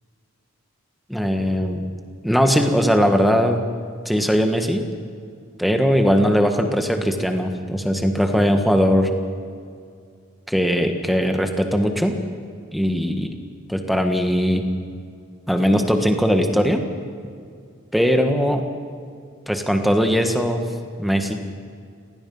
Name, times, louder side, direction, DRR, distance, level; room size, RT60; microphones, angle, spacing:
voice 1, 1.1-1.8 2.2-3.6 4.0-4.8 5.6-9.1 10.5-12.2 12.7-13.3 13.7-14.6 15.5-16.8 17.9-18.6 19.5-20.6 21.0-21.3, equal, ahead, 4 dB, 1.6 m, -19 dB
29.0 x 18.5 x 5.6 m, 2.3 s
head